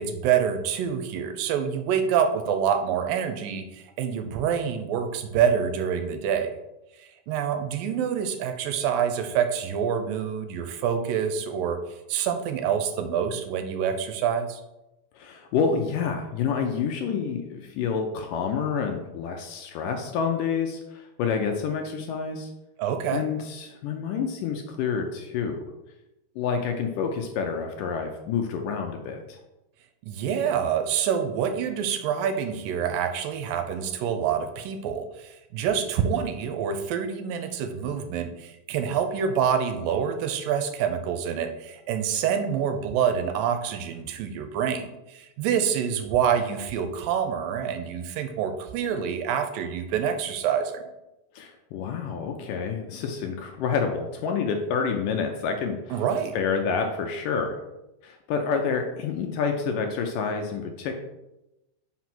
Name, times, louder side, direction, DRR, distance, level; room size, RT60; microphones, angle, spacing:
voice 1, 0.0-6.6 7.0-11.8 12.1-14.6 22.8-23.3 30.0-50.9 55.9-56.4, right 8 dB, 75° right, 7 dB, 2.3 m, -26 dB
voice 2, 15.2-22.5 23.1-25.6 26.4-29.4 51.4-56.0 56.4-57.6 58.0-61.0, left 6 dB, 75° left, 4 dB, 2.0 m, -28 dB
5.8 x 5.2 x 6.0 m, 0.96 s
omnidirectional pair, 4.3 m